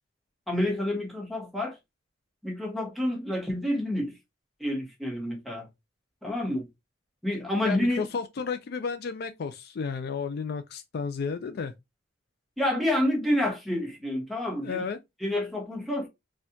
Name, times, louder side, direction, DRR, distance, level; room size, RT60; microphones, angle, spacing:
voice 1, 0.5-1.8 2.4-4.1 4.6-5.7 6.2-6.7 7.2-8.1 12.6-14.8 15.2-16.1, left 1 dB, ahead, 1.1 m, -28 dB
voice 2, 7.6-11.7 14.6-15.0, left 5 dB, 55° left, 0.4 m, -32 dB
4.2 x 2.4 x 2.6 m
head